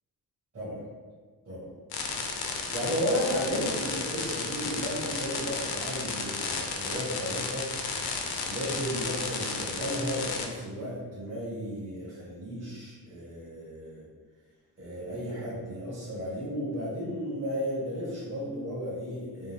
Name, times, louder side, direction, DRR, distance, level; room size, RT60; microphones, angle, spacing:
sound 1, 1.9-10.5, left 4 dB, 70° left, 0.6 m, -33 dB
voice 1, 2.7-7.7 8.4-14.1 14.8-19.5, equal, 40° right, -10 dB, 1.2 m, -34 dB
3.5 x 2.5 x 3.4 m, 1.5 s
wide cardioid pair, 105°, 39 cm